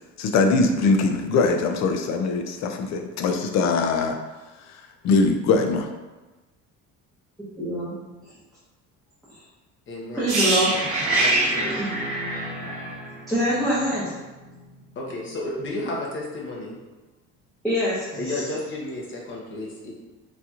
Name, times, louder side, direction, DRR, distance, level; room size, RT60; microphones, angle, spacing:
voice 1, 0.2-4.2 5.0-5.9, left 3 dB, 60° left, 5 dB, 0.5 m, -21 dB
voice 2, 7.6-7.9 10.1-10.7 11.8-11.9 13.3-14.2 17.6-18.2, equal, ahead, -12 dB, 0.9 m, -24 dB
voice 3, 9.9-10.2 11.1-11.8 14.9-16.8 18.1-19.9, left 1 dB, 40° left, -2 dB, 0.9 m, -32 dB
sound 1, 10.3-14.1 14.4-14.6, right 2 dB, 50° right, 1.2 m, -25 dB
4.1 x 2.8 x 2.4 m, 1.2 s
cardioid pair, 135°, 30 cm